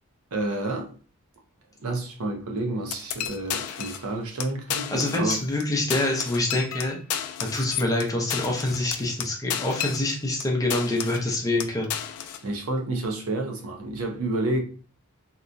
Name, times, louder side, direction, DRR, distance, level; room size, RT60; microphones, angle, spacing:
voice 1, 0.3-0.9 1.8-5.4 12.4-14.6, right 2 dB, 70° right, 0.6 m, -29 dB
sound 1, 2.9-4.1 4.4-4.5 4.7-5.6 5.9-10.4 10.7-11.3 11.6-12.4, left 10 dB, 75° left, 0.3 m, -32 dB
voice 2, 4.9-7.0 7.4-11.9, left 2 dB, 15° left, 0.6 m, -26 dB
2.9 x 2.2 x 2.5 m
head